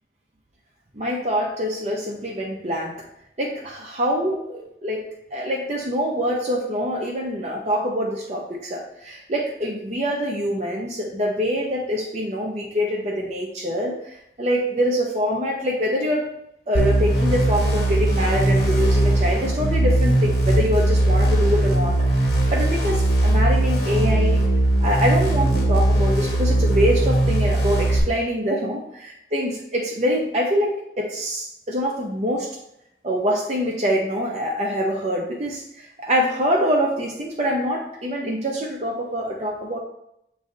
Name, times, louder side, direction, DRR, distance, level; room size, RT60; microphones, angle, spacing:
voice 1, 0.9-3.0 3.4-4.4 4.8-16.3 16.7-24.4 24.8-32.5 33.0-39.8, equal, 40° right, -2 dB, 0.8 m, -25 dB
sound 1, 16.7-28.0, right 1 dB, 65° left, 1.8 m, -19 dB
7.6 x 3.2 x 3.9 m, 0.78 s
head